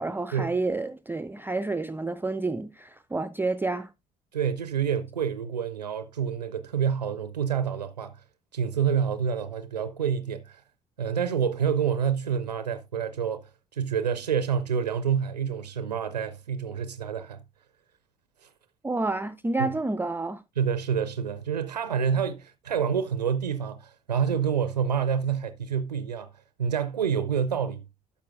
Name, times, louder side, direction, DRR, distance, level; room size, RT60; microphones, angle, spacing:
voice 1, 0.0-3.9 18.8-20.4, right 3 dB, 10° right, 0.4 m, -29 dB
voice 2, 4.3-8.2 8.5-10.6 11.0-17.4 18.4-18.5 19.6-19.7 20.6-26.3 26.6-27.8, right 7 dB, 85° right, 0.4 m, -28 dB
12.0 x 6.8 x 2.4 m
figure-of-eight pair, 45°, 21 cm